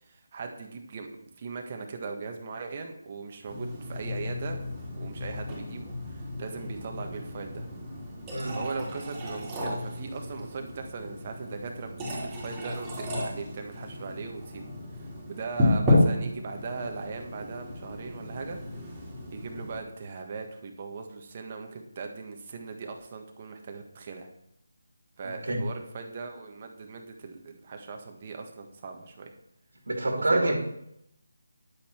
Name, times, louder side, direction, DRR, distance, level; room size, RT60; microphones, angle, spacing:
voice 1, 0.1-4.6 4.9-7.6 8.5-14.7 15.0-18.6 19.3-24.3 25.2-29.3 30.3-30.5, right 4 dB, 35° right, 4 dB, 1.5 m, -39 dB
sound 1, 3.5-19.8, left 1 dB, 15° right, 3.1 m, -32 dB
voice 2, 25.2-25.6 29.9-30.5, right 2 dB, 65° right, 2 dB, 2.3 m, -27 dB
10.0 x 8.6 x 4.5 m, 0.76 s
figure-of-eight pair, 155°, 0 cm